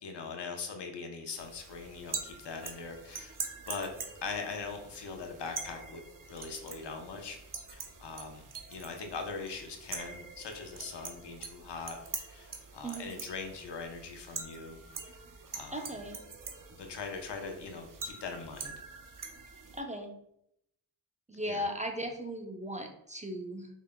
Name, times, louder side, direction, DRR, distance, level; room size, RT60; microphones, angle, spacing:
voice 1, 0.0-3.4 3.7-3.9 4.2-7.4 7.7-8.4 8.7-14.8 15.1-15.2 15.5-16.0 16.7-18.8 21.4-21.7, left 4 dB, 65° left, 4 dB, 0.9 m, -41 dB
sound 1, 1.4-19.8, right 5 dB, 45° right, 0.8 m, -44 dB
voice 2, 12.8-13.2 15.7-16.2 19.7-20.1 21.3-23.7, equal, 15° right, 4 dB, 0.7 m, -37 dB
4.9 x 3.4 x 2.2 m, 0.76 s
cardioid pair, 45°, 44 cm